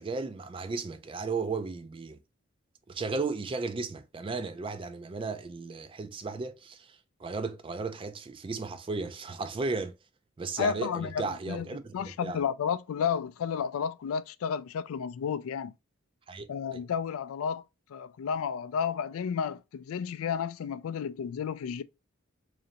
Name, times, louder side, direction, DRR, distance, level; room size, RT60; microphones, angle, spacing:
voice 1, 0.0-2.2 2.9-9.9 10.4-12.4 16.3-16.8, right 4 dB, 25° right, 0.3 m, -35 dB
voice 2, 10.6-11.7 11.9-15.7 16.5-17.6 17.9-21.8, left 7 dB, 75° left, 0.3 m, -32 dB
3.8 x 3.2 x 2.8 m
head